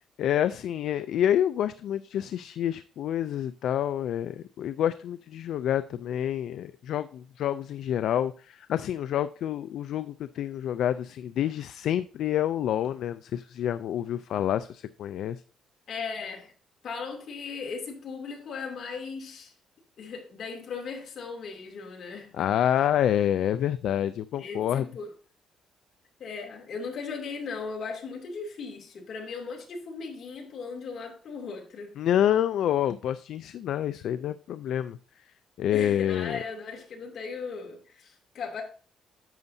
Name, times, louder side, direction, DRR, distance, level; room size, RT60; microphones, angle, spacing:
voice 1, 0.2-15.4 22.3-24.8 32.0-35.0 35.6-36.4, left 10 dB, 65° left, 0.3 m, -28 dB
voice 2, 15.9-16.5 16.8-19.5 20.0-22.5 24.4-25.1 26.2-32.0 35.7-38.6, left 5 dB, 45° left, 2.5 m, -37 dB
10.5 x 8.1 x 2.7 m
cardioid pair, 165°, 0 cm